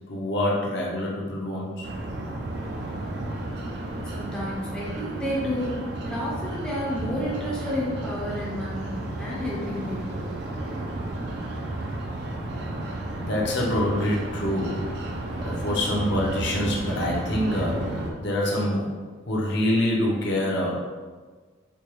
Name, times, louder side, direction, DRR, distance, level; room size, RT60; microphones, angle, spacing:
voice 1, 0.1-1.9 13.2-14.9 15.3-18.9 19.3-20.8, left 1 dB, 55° left, -3 dB, 0.7 m, -26 dB
sound 1, 1.8-18.1, right 1 dB, 55° right, 0.4 m, -32 dB
voice 2, 4.0-10.3, equal, 5° left, -6 dB, 0.5 m, -31 dB
4.4 x 2.2 x 3.0 m, 1.4 s
head